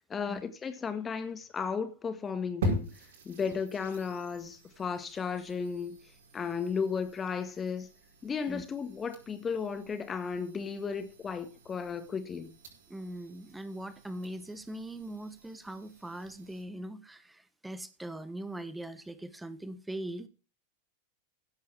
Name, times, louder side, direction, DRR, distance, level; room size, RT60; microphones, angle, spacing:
voice 1, 0.1-2.9 3.3-6.0 6.3-7.9 8.2-12.5, left 6 dB, 20° left, 1.8 m, -34 dB
sound 1, 2.6-16.6, equal, 60° right, 5.3 m, -43 dB
voice 2, 12.9-20.3, right 1 dB, 5° right, 1.3 m, -41 dB
15.5 x 8.3 x 4.7 m
figure-of-eight pair, 90°, 0 cm